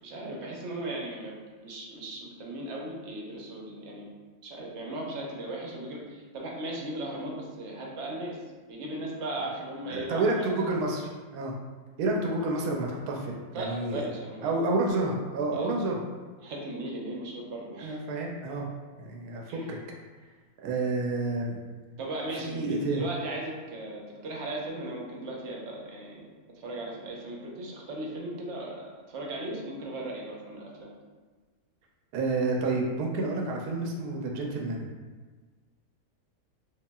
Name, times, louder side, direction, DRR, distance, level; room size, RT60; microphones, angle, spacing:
voice 1, 0.0-4.1 4.4-6.0 6.3-8.4 8.7-10.5 13.5-14.6 15.5-15.7 16.4-18.0 19.5-19.7 22.0-26.2 26.6-30.9, right 1 dB, 60° right, -2 dB, 0.8 m, -37 dB
voice 2, 9.8-11.5 12.0-14.1 14.4-16.0 17.8-18.7 19.0-19.8 20.6-21.6 22.4-23.0 32.1-34.8, right 2 dB, 85° right, 0 dB, 1.1 m, -29 dB
4.7 x 2.6 x 2.3 m, 1.4 s
omnidirectional pair, 1.6 m